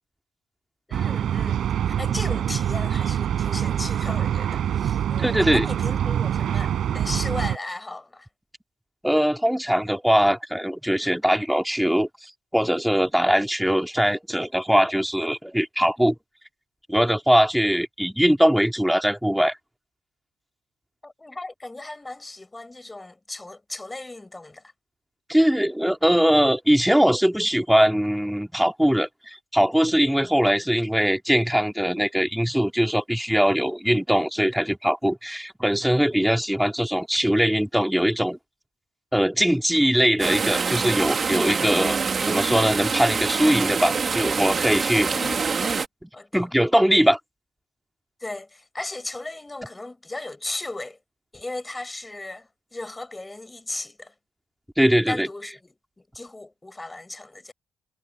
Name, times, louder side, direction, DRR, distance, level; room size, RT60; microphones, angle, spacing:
voice 1, 0.9-8.3 21.0-24.7 45.1-45.8 46.1-46.5 48.2-51.0 51.3-54.1 55.1-57.5, left 2 dB, 15° left, 7.9 m, -36 dB
sound 1, 0.9-7.6, right 10 dB, 70° right, 4.8 m, -25 dB
voice 2, 5.2-5.7 9.0-16.2 16.9-19.6 25.3-38.4 39.1-42.0 42.2-45.1 46.3-47.2 54.8-55.3, equal, 5° right, 2.4 m, -21 dB
sound 2, 40.2-45.9, right 5 dB, 40° right, 2.2 m, -25 dB
cardioid pair, 90°, 0 cm